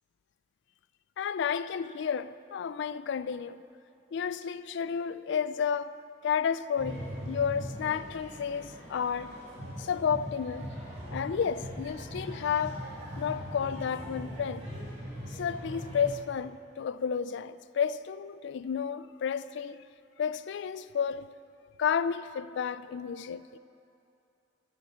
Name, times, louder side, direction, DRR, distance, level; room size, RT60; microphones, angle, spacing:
voice 1, 1.2-3.6 4.1-5.9 6.2-9.4 9.8-10.7 11.1-12.8 13.2-14.7 15.3-19.8 20.2-21.3 21.8-23.6, left 7 dB, 65° left, 0.3 m, -31 dB
sound 1, 6.7-16.1, equal, 35° right, 2.8 m, -40 dB
9.2 x 7.3 x 7.2 m
head